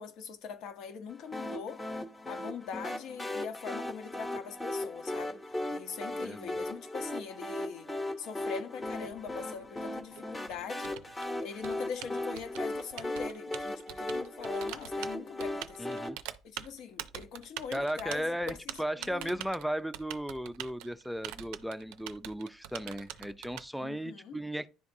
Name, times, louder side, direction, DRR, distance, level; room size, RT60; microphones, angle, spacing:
voice 1, 0.0-1.8 2.3-5.4 5.7-7.9 8.2-10.9 11.4-16.0 16.4-18.6 19.0-19.3 23.7-24.4, left 6 dB, 70° left, 0.9 m, -42 dB
sound 1, 1.3-16.1, left 1 dB, 15° left, 1.0 m, -37 dB
voice 2, 6.1-6.5 15.8-16.2 17.7-24.7, equal, ahead, 0.4 m, -36 dB
Typing, 8.8-23.6, right 12 dB, 85° right, 0.4 m, -44 dB
10.5 x 3.6 x 2.6 m
cardioid pair, 115°, 0 cm